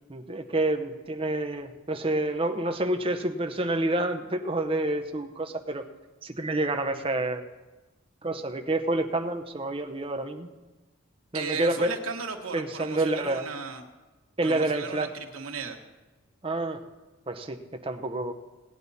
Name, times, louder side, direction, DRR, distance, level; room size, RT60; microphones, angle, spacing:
voice 1, 0.1-5.8 6.2-7.4 8.2-10.5 11.3-11.9 12.5-13.5 14.4-15.1 16.4-16.8 17.3-18.3, right 2 dB, 25° right, 6 dB, 0.8 m, -28 dB
voice 2, 11.3-13.8 14.4-15.8, right 4 dB, 90° right, 4 dB, 1.3 m, -35 dB
18.0 x 9.7 x 4.1 m, 1.2 s
head